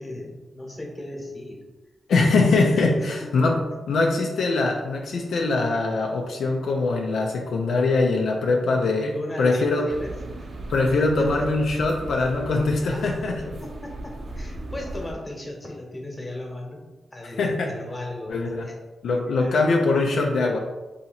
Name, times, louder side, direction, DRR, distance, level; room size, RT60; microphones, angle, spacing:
voice 1, 0.0-1.6 2.7-3.3 9.0-10.1 10.4-10.5 11.2-11.3 12.8-13.1 13.6-16.8 17.1-18.4 18.6-18.7 19.4-19.5, left 1 dB, 25° left, 0 dB, 1.1 m, -36 dB
voice 2, 2.1-3.6 3.9-9.1 9.4-9.8 10.7-13.5 17.4-17.7 18.3-18.7 19.0-20.6, left 3 dB, 80° left, 0 dB, 0.4 m, -22 dB
sound 1, 9.9-15.1, right 1 dB, 55° right, 0.6 m, -37 dB
2.8 x 2.8 x 4.1 m, 1.1 s
cardioid pair, 65°, 0 cm